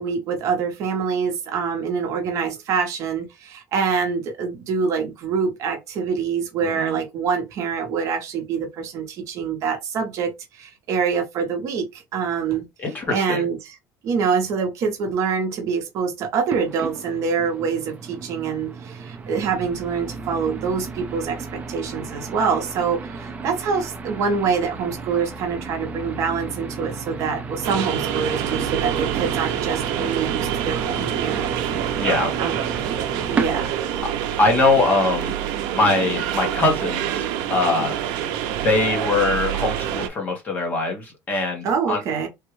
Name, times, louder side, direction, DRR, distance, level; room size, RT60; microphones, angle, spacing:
voice 1, 0.0-12.6 13.1-13.7 14.0-31.5 32.4-32.6 33.3-33.8 41.6-42.3, right 5 dB, 45° right, 0.8 m, -25 dB
voice 2, 6.6-7.0 12.8-13.5 31.9-32.3 34.4-35.3 35.7-38.0 38.5-42.0, left 3 dB, 20° left, 0.9 m, -22 dB
sound 1, 16.5-34.0, right 4 dB, 20° right, 0.5 m, -33 dB
sound 2, 27.6-40.1, right 10 dB, 80° right, 0.5 m, -26 dB
3.5 x 2.2 x 3.0 m
cardioid pair, 175°, 7 cm